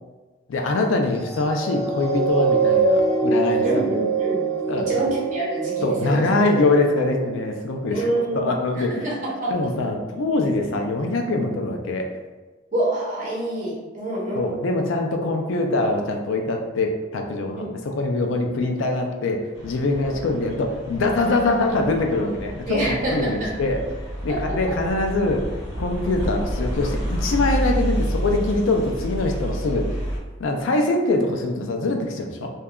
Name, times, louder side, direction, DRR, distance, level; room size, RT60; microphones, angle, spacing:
voice 1, 0.5-3.9 4.7-5.1 5.8-8.1 8.3-9.1 9.5-12.0 14.3-23.8 24.2-25.4 25.8-29.9 30.4-32.5, left 2 dB, 80° left, 3 dB, 0.4 m, -23 dB
sound 1, 1.2-7.9 8.5-8.6, right 4 dB, 20° left, 1.2 m, -24 dB
voice 2, 3.6-4.5 4.8-6.6 7.9-9.5 12.7-14.6 17.6-17.7 20.1-20.2 22.7-23.5, right 1 dB, 40° right, -5 dB, 0.8 m, -27 dB
sound 2, 19.5-30.2, equal, 45° left, 1.4 m, -29 dB
2.7 x 2.3 x 2.3 m, 1.2 s
head